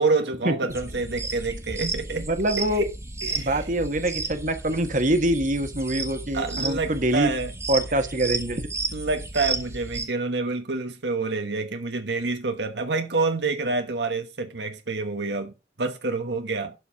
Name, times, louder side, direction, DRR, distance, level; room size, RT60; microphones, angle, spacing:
voice 1, 0.0-2.3 2.6-2.9 3.2-3.7 6.3-7.5 8.9-15.5 15.8-16.7, right 3 dB, 70° right, 1.2 m, -27 dB
sound 1, 0.7-10.0, right 3 dB, 15° right, 1.8 m, -33 dB
voice 2, 2.1-2.8 3.4-7.3 7.7-8.7, right 1 dB, 45° right, 1.4 m, -24 dB
12.0 x 4.7 x 5.7 m
head